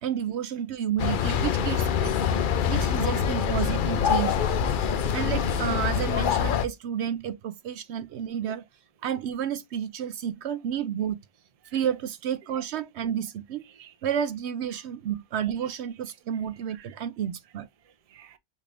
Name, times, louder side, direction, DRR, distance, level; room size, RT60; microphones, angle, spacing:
voice 1, 0.0-2.2 2.7-4.3 5.1-8.6 9.0-11.2 11.7-13.6 14.0-17.7, right 9 dB, 70° right, 0.8 m, -31 dB
sound 1, 1.0-6.7, left 7 dB, 60° left, 0.6 m, -25 dB
voice 2, 2.3-2.8 4.8-4.9 8.4-8.5 11.6-11.8 12.5-12.6 13.7-13.9 14.7-14.8 15.6-15.7 16.7-17.0 17.8-18.4, right 6 dB, 40° right, 0.6 m, -51 dB
6.6 x 2.5 x 3.3 m
omnidirectional pair, 1.2 m